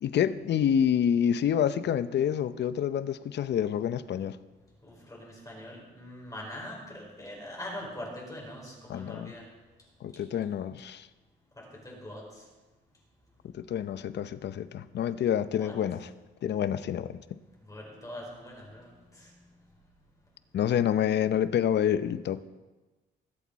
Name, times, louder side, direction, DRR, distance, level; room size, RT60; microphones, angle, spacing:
voice 1, 0.0-4.4 8.9-9.3 10.0-11.1 13.5-16.1 16.4-17.2 20.5-22.4, left 9 dB, 60° left, 14 dB, 0.7 m, -27 dB
voice 2, 4.8-9.5 11.6-12.3 15.6-15.8 17.7-19.3, left 1 dB, 15° left, -3 dB, 5.3 m, -43 dB
21.0 x 8.4 x 4.2 m, 1.2 s
cardioid pair, 90°, 20 cm